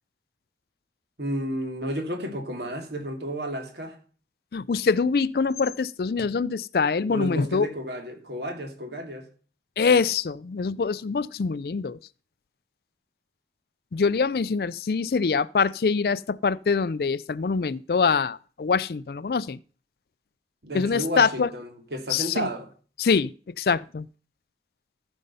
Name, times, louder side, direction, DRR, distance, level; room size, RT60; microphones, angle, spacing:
voice 1, 1.2-4.0 7.1-9.3 20.6-22.7, right 1 dB, 70° right, 2.6 m, -32 dB
voice 2, 4.5-7.7 9.8-12.0 13.9-19.6 20.7-21.5 22.1-22.5 23.0-24.1, left 5 dB, 60° left, 0.4 m, -24 dB
14.5 x 5.4 x 5.5 m
head